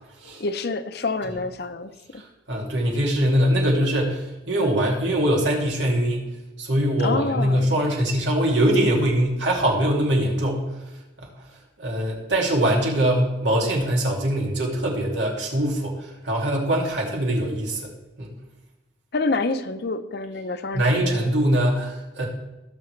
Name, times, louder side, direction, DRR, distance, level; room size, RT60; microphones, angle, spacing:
voice 1, 0.4-2.2 7.0-7.6 19.1-21.3, left 3 dB, 60° left, 10 dB, 0.7 m, -27 dB
voice 2, 2.2-6.2 6.6-10.8 11.2-11.3 11.8-17.9 18.2-18.3 20.7-22.2, right 1 dB, 90° right, -1 dB, 2.5 m, -22 dB
18.0 x 6.7 x 3.3 m, 1.0 s
head